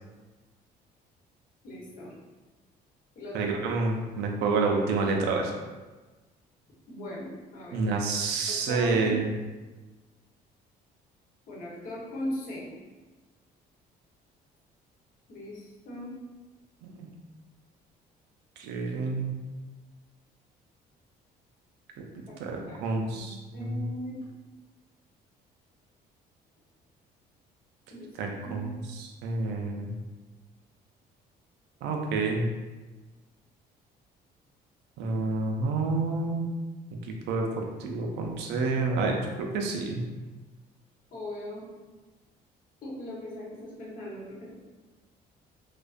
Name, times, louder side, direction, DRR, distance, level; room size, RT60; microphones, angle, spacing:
voice 1, 1.6-2.1 3.1-3.6 6.9-7.8 8.7-9.2 11.5-12.7 15.3-16.1 22.3-22.4 22.7-24.2 27.9-28.1 28.4-28.7 41.1-41.6 42.8-44.5, left 1 dB, 55° left, -6 dB, 0.9 m, -39 dB
voice 2, 3.3-5.5 7.7-9.3 16.8-17.1 18.6-19.4 22.4-23.8 28.2-30.0 31.8-32.5 35.0-36.5 37.3-37.5 37.8-40.0, right 3 dB, 85° right, 1 dB, 0.4 m, -28 dB
2.4 x 2.1 x 2.4 m, 1.3 s
cardioid pair, 110°, 17 cm